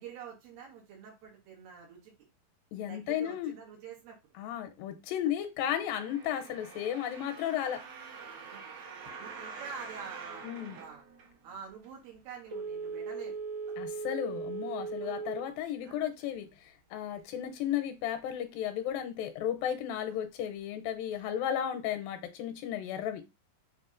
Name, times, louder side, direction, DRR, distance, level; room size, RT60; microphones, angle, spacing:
voice 1, 0.0-2.1 2.9-4.2 8.5-8.7 9.2-10.5 10.7-11.0 11.4-13.4 15.0-15.2 15.8-16.0 20.0-20.2, right 6 dB, 85° right, -1 dB, 3.0 m, -47 dB
voice 2, 2.7-3.5 4.4-7.8 10.4-10.8 13.8-23.2, left 10 dB, 85° left, 7 dB, 2.4 m, -34 dB
sound 1, 5.8-11.7 12.3-12.4, right 5 dB, 70° right, 1.7 m, -46 dB
Telephone, 12.5-15.6 16.0-16.1, right 5 dB, 45° right, 1.6 m, -38 dB
6.7 x 2.8 x 2.4 m, 0.25 s
omnidirectional pair, 4.0 m